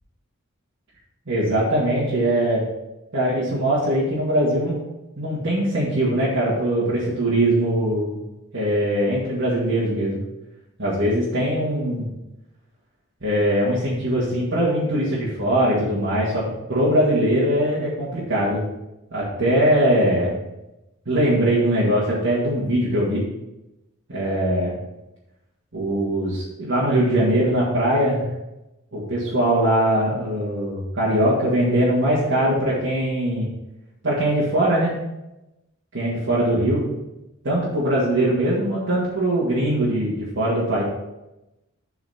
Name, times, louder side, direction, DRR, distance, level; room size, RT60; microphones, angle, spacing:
voice 1, 1.3-2.6 3.1-4.8 5.2-8.1 8.5-10.2 10.8-12.1 13.2-16.4 16.7-18.6 19.1-20.4 21.1-23.2 24.1-24.8 25.7-28.2 28.9-33.5 34.0-34.9 35.9-36.9 37.4-40.8, right 1 dB, 60° right, -8 dB, 2.1 m, -21 dB
7.8 x 4.8 x 5.8 m, 0.95 s
head